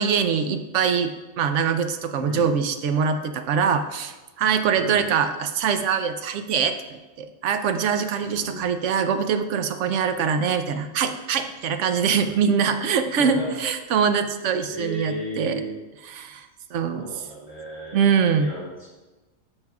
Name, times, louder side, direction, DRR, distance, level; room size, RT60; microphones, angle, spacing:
voice 1, 0.0-15.6 16.1-16.5 16.7-17.0 17.9-18.5, right 6 dB, 70° right, 8 dB, 0.9 m, -23 dB
voice 2, 2.2-2.5 4.7-5.1 8.2-8.7 12.1-12.3 13.2-13.5 14.7-15.7 16.8-18.0 18.4-18.9, right 1 dB, 25° left, -8 dB, 2.4 m, -34 dB
9.7 x 6.7 x 2.3 m, 1.2 s
omnidirectional pair, 1.4 m